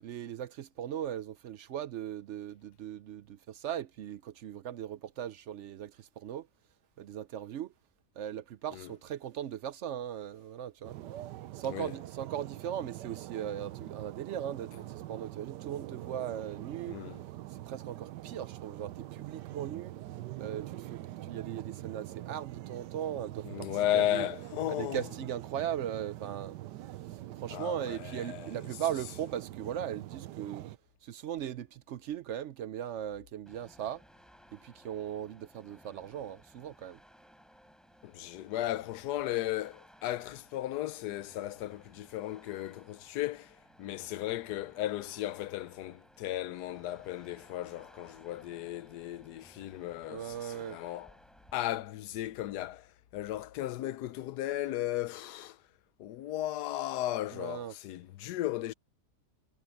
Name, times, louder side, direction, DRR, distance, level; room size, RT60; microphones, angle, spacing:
voice 1, 0.0-6.5 7.0-7.7 8.2-11.0 11.5-17.0 17.5-20.0 20.4-24.2 24.7-26.6 27.1-30.7 31.0-34.0 34.5-37.0 50.1-50.8 57.3-57.7, right 10 dB, 70° right, 0.7 m, -38 dB
sound 1, 10.8-30.8, right 15 dB, 85° right, 1.3 m, -44 dB
voice 2, 16.9-17.2 23.4-25.1 27.5-28.5 38.0-51.1 51.5-55.6 56.0-58.7, left 13 dB, 75° left, 1.1 m, -35 dB
sound 2, 33.5-51.5, equal, ahead, 6.8 m, -60 dB
omnidirectional pair, 1.8 m